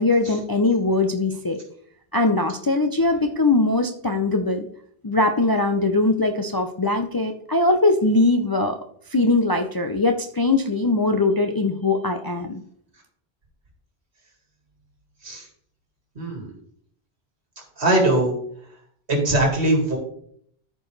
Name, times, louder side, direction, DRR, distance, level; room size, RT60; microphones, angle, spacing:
voice 1, 0.0-1.6 2.1-4.7 5.0-8.8 9.1-12.6, left 2 dB, 35° left, 4 dB, 0.3 m, -21 dB
voice 2, 16.2-16.5 17.8-18.3 19.1-20.0, right 1 dB, 80° right, 0 dB, 2.4 m, -20 dB
13.5 x 4.5 x 3.2 m, 0.65 s
omnidirectional pair, 1.1 m